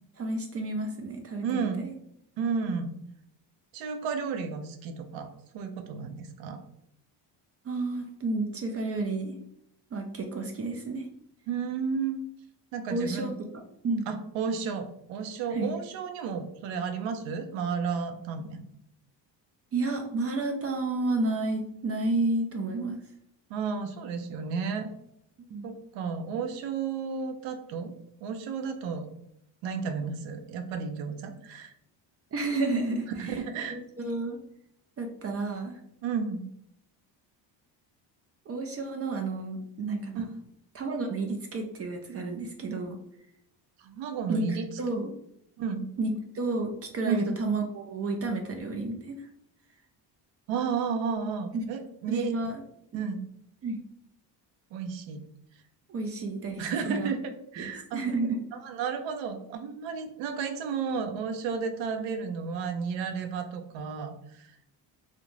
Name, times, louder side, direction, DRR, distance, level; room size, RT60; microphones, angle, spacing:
voice 1, 0.2-1.9 7.6-9.3 9.9-11.1 12.9-13.3 13.8-14.1 15.5-15.7 19.7-23.0 25.5-25.7 32.3-33.4 33.7-34.4 35.0-35.8 38.5-40.2 40.7-43.0 44.3-45.1 46.0-49.3 51.5-51.7 52.1-52.6 53.6-53.8 55.9-57.1 57.6-58.4, right 2 dB, 35° right, 3 dB, 0.4 m, -31 dB
voice 2, 1.4-1.9 2.4-2.9 3.7-5.3 5.5-6.6 11.5-12.2 12.7-13.4 14.1-18.6 23.5-24.9 25.6-27.9 28.2-29.1 29.6-31.7 33.2-33.8 36.0-36.5 40.2-40.3 43.8-44.7 45.6-45.9 47.0-47.3 50.5-52.3 52.9-53.3 54.7-55.2 56.6-58.1 58.5-64.5, right 5 dB, 80° right, 7 dB, 0.6 m, -32 dB
2.5 x 2.1 x 3.0 m, 0.76 s
cardioid pair, 85°, 45 cm